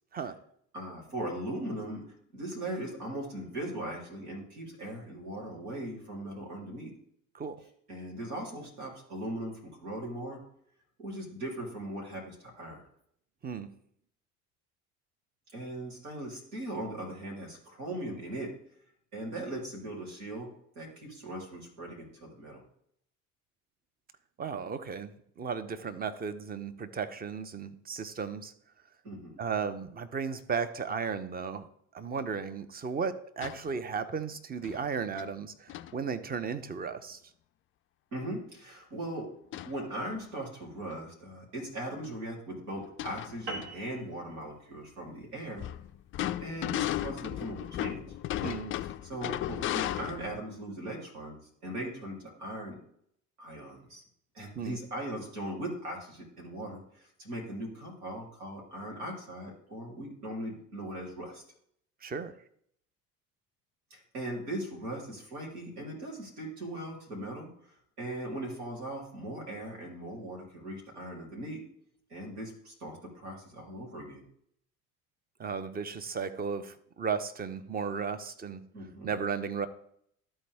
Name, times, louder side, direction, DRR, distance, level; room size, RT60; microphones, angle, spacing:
voice 1, 0.7-2.0 2.3-6.9 7.9-10.4 11.0-12.9 15.5-18.5 19.1-20.5 20.7-22.6 29.0-29.4 38.1-39.3 39.6-45.7 46.4-48.0 49.0-52.8 53.4-54.0 54.3-61.4 63.9-71.6 72.1-74.2 78.7-79.1, right 1 dB, 75° right, -3 dB, 3.3 m, -39 dB
voice 2, 24.4-28.5 29.4-31.7 31.9-37.2 48.4-48.7 54.5-54.8 62.0-62.4 75.4-78.6 79.0-79.7, right 6 dB, 20° right, 11 dB, 0.7 m, -35 dB
sound 1, 33.4-33.7 34.6-34.8 35.2-35.3 35.7-35.9 39.5-39.8 40.2-40.3 41.6-41.7 42.0-42.1 42.7-43.7 45.6-50.4, left 13 dB, 30° left, 0.4 m, -35 dB
sound 2, 43.5-48.2, right 2 dB, 60° right, 1.7 m, -46 dB
13.0 x 4.4 x 3.5 m, 0.69 s
figure-of-eight pair, 65°, 45 cm